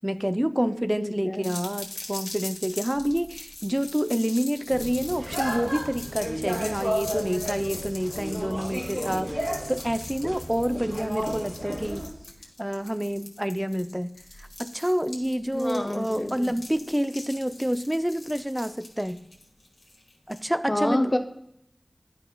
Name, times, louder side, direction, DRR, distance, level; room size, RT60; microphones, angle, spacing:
voice 1, 0.0-12.1 12.6-14.1 14.4-19.2 20.3-21.0, equal, 10° right, 11 dB, 0.4 m, -28 dB
voice 2, 0.6-1.5 15.5-16.5 20.7-21.2, left 1 dB, 35° left, 6 dB, 0.8 m, -28 dB
sound 1, 1.4-20.5, left 2 dB, 80° left, 1.6 m, -42 dB
sound 2, 4.7-12.1, equal, 55° right, 2.6 m, -32 dB
11.5 x 5.6 x 2.2 m, 0.80 s
wide cardioid pair, 55°, 0 cm